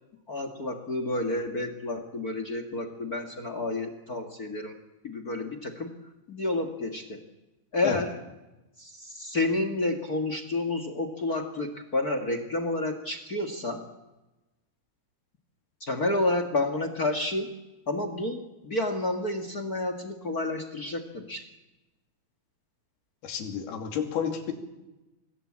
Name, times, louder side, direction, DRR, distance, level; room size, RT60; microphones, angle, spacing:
voice 1, 0.3-4.7 5.0-5.9 6.3-7.2 7.7-8.1 8.8-13.8 15.8-17.5 17.9-21.4, left 2 dB, 45° left, 9 dB, 1.1 m, -30 dB
voice 2, 23.2-24.5, left 8 dB, 75° left, 4 dB, 4.5 m, -30 dB
26.5 x 21.0 x 8.7 m, 1.0 s
omnidirectional pair, 4.5 m